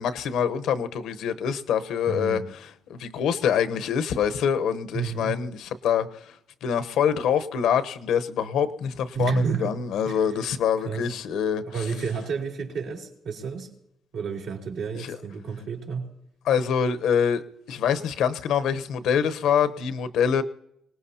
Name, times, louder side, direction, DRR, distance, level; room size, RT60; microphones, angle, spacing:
voice 1, 0.0-2.4 2.9-11.8 15.0-15.2 16.4-20.4, left 8 dB, 85° left, 0.9 m, -25 dB
voice 2, 2.1-2.5 4.9-5.3 9.1-9.8 10.0-10.2 10.8-11.0 11.6-13.7 14.1-16.1, right 6 dB, 85° right, 3.9 m, -30 dB
25.5 x 19.0 x 2.8 m
cardioid pair, 90°, 0 cm